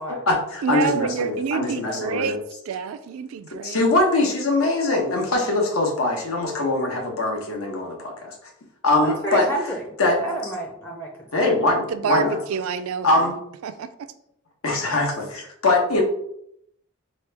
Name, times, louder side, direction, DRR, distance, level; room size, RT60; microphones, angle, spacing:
voice 1, 0.1-2.4 3.6-8.3 8.8-9.4 10.0-10.2 10.4-10.5 11.3-12.4 13.0-13.4 14.6-16.0, left 2 dB, 85° left, 1 dB, 1.1 m, -22 dB
voice 2, 0.6-2.4 2.7-3.8 11.9-13.3 13.6-13.9, right 6 dB, 80° right, 10 dB, 0.3 m, -27 dB
voice 3, 9.0-9.8 10.2-11.5, right 1 dB, 10° left, 0 dB, 0.5 m, -30 dB
4.1 x 3.1 x 3.4 m, 0.74 s
head